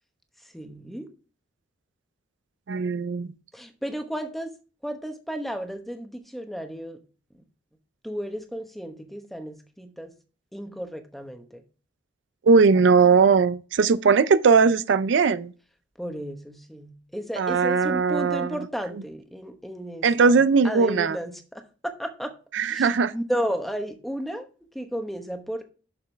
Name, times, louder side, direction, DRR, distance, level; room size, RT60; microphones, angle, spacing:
voice 1, 0.5-1.1 3.5-4.5 4.8-7.0 8.0-10.1 10.5-11.6 16.0-22.3 22.7-24.5 24.7-25.6, equal, ahead, 0.9 m, -33 dB
voice 2, 2.7-3.3 12.4-15.5 17.4-18.6 20.0-21.2 22.5-23.1, right 5 dB, 70° right, 0.4 m, -19 dB
7.0 x 6.6 x 3.3 m
head